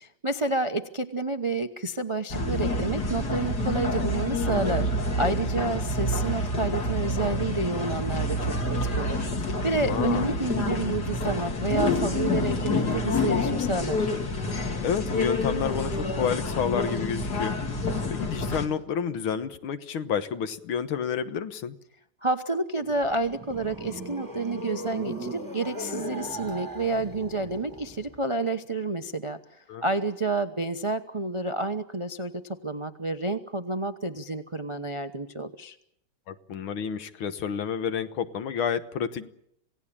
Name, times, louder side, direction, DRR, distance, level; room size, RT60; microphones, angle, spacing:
voice 1, 0.0-4.9 5.2-14.1 22.2-29.4 29.8-35.8, right 2 dB, 55° right, 8 dB, 0.3 m, -29 dB
sound 1, 2.3-18.7, left 2 dB, 45° left, 2.9 m, -28 dB
voice 2, 9.7-10.3 14.8-17.6 18.1-21.8 29.7-29.8 36.3-39.3, left 7 dB, 70° left, 11 dB, 2.0 m, -30 dB
sound 2, 22.9-28.2, right 1 dB, 10° right, 1.4 m, -38 dB
27.5 x 17.5 x 8.7 m, 0.74 s
omnidirectional pair, 2.4 m